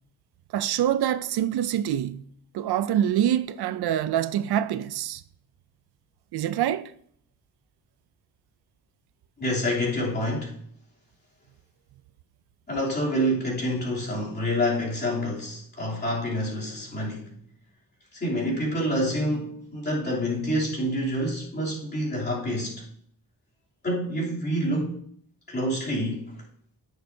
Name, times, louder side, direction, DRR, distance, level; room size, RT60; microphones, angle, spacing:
voice 1, 0.5-2.2 2.5-5.2 6.3-6.9, right 10 dB, 85° right, 0.5 m, -25 dB
voice 2, 9.4-10.5 12.7-17.3 18.1-22.8 23.8-25.0 25.5-26.3, equal, 25° left, 3.2 m, -27 dB
16.0 x 6.6 x 2.7 m
wide cardioid pair, 150°, 37 cm